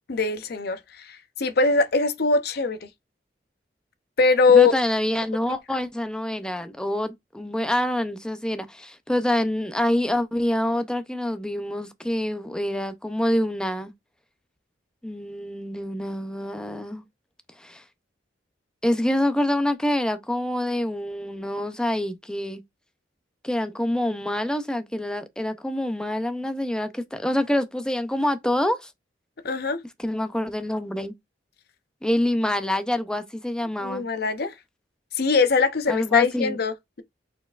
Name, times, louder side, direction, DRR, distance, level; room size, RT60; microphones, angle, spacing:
voice 1, 0.1-2.9 4.2-4.7 29.4-29.8 33.8-34.5 35.1-37.0, left 4 dB, 60° left, 0.6 m, -22 dB
voice 2, 4.5-13.9 15.0-17.0 17.6-17.8 18.8-22.6 23.4-28.9 30.0-31.1 32.0-34.0 35.9-36.6, left 1 dB, 5° left, 0.5 m, -26 dB
4.6 x 4.1 x 2.4 m
head